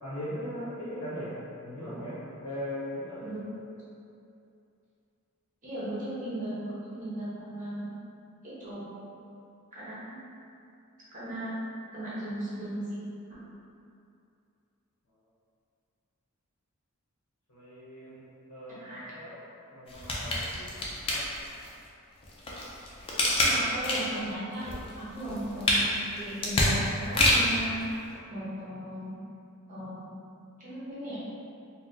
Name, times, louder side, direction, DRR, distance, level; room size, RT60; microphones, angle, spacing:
voice 1, 0.0-1.3 1.6-3.3 17.5-19.4 19.7-20.7 21.1-21.2, equal, 60° left, -12 dB, 0.7 m, -39 dB
voice 2, 5.6-7.9 8.4-8.9 9.7-10.2 11.1-11.5 11.9-13.0 18.8-19.0 23.3-24.6 25.0-27.8 28.3-29.1 29.7-30.0 30.6-31.2, right 1 dB, 35° right, -10 dB, 0.9 m, -36 dB
sound 1, 19.9-21.7 22.2-24.2 24.6-27.6 28.2-28.3, left 1 dB, 25° left, 0.4 m, -27 dB
4.0 x 2.0 x 2.5 m, 2.6 s
head